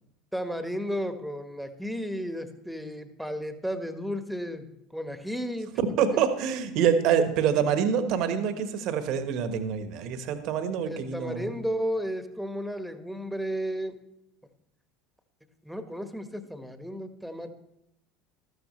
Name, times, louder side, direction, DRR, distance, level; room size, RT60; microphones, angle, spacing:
voice 1, 0.3-4.7 4.9-5.7 10.8-14.0 15.6-17.5, equal, ahead, 7 dB, 1.5 m, -33 dB
voice 2, 6.0-11.5, right 7 dB, 60° right, 9 dB, 1.4 m, -26 dB
13.5 x 13.0 x 3.3 m, 0.83 s
hypercardioid pair, 75°, 0 cm